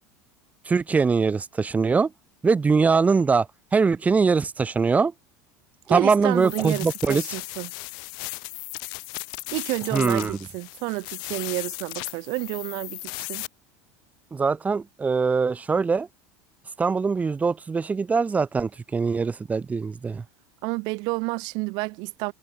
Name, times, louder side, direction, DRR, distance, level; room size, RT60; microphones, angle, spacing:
voice 1, 0.7-2.1 2.4-3.5 3.7-5.1 5.9-7.2 9.9-10.4 14.3-16.1 16.8-20.2, right 5 dB, 20° right, 1.5 m, -22 dB
voice 2, 5.9-7.7 9.5-13.4 20.6-22.3, right 28 dB, 65° right, 1.3 m, -30 dB
sound 1, 6.3-13.5, left 30 dB, 65° left, 2.5 m, -36 dB
supercardioid pair, 115°, 8 cm